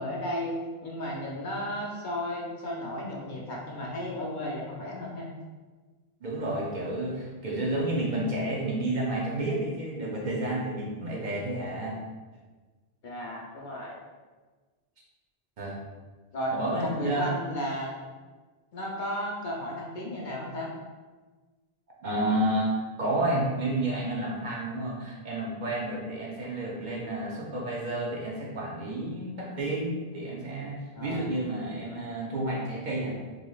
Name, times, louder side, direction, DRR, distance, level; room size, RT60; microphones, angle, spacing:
voice 1, 0.0-5.3 13.0-14.0 16.3-16.6 16.8-17.9 18.7-20.7 31.0-31.2, equal, 55° left, -3 dB, 0.7 m, -34 dB
voice 2, 6.2-12.0 15.6-15.8 16.5-17.3 22.0-22.7 23.0-33.2, right 1 dB, 55° right, -3 dB, 0.7 m, -30 dB
4.0 x 3.0 x 2.3 m, 1.3 s
omnidirectional pair, 1.0 m